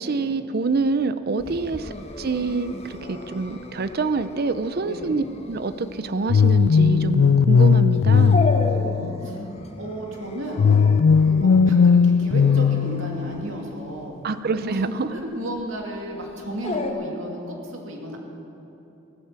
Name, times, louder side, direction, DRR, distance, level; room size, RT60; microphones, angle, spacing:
voice 1, 0.0-8.4 14.2-15.1, right 3 dB, 50° right, 12 dB, 0.5 m, -26 dB
Dog, 1.4-16.9, left 2 dB, 30° left, 1.2 m, -35 dB
voice 2, 4.8-5.2 8.6-9.4 9.8-10.6 11.2-14.1 14.5-18.2, right 1 dB, 75° right, 1 dB, 2.5 m, -34 dB
sound 1, 6.3-9.4 10.6-13.5, left 6 dB, 75° left, 0.4 m, -17 dB
15.5 x 12.0 x 7.5 m, 3.0 s
head